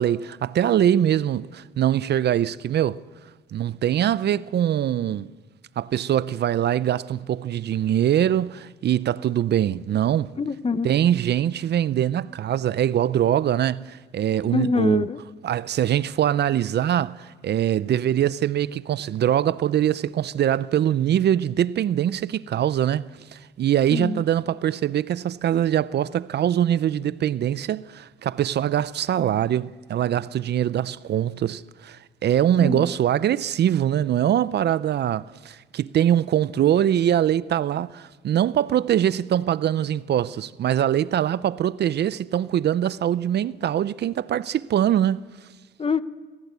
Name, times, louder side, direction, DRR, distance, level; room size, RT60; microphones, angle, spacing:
voice 1, 0.0-3.0 3.5-5.3 5.8-10.3 10.8-15.1 15.4-45.3, right 10 dB, 60° right, 0.6 m, -23 dB
voice 2, 10.4-10.9 14.5-15.2 23.9-24.2 32.6-32.9 45.8-46.0, left 4 dB, 30° left, 1.0 m, -24 dB
26.0 x 16.0 x 8.2 m
cardioid pair, 90°, 20 cm